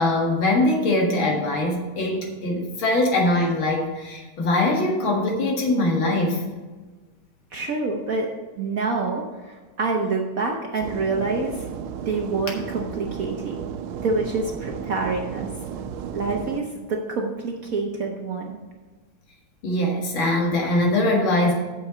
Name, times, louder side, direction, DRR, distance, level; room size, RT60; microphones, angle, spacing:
voice 1, 0.0-6.4 19.6-21.5, left 1 dB, 70° left, -1 dB, 2.5 m, -22 dB
voice 2, 7.5-8.3 8.6-11.6 12.1-13.6 14.0-15.5 16.1-18.6, right 3 dB, 55° right, 1 dB, 1.0 m, -27 dB
sound 1, 10.8-16.6, right 8 dB, 85° right, 1.5 m, -34 dB
8.5 x 6.8 x 5.0 m, 1.3 s
omnidirectional pair, 2.3 m